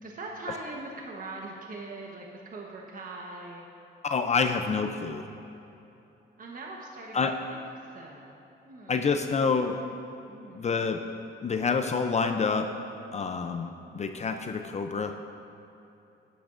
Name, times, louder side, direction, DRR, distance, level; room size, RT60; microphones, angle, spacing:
voice 1, 0.0-3.7 6.4-9.5 10.3-10.9, right 2 dB, 45° right, -1 dB, 1.1 m, -42 dB
voice 2, 4.0-5.3 7.1-7.3 8.9-9.8 10.5-11.0 11.4-12.7 13.1-15.2, left 5 dB, 35° left, 6 dB, 0.5 m, -27 dB
13.5 x 10.0 x 2.6 m, 2.9 s
cardioid pair, 90°, 20 cm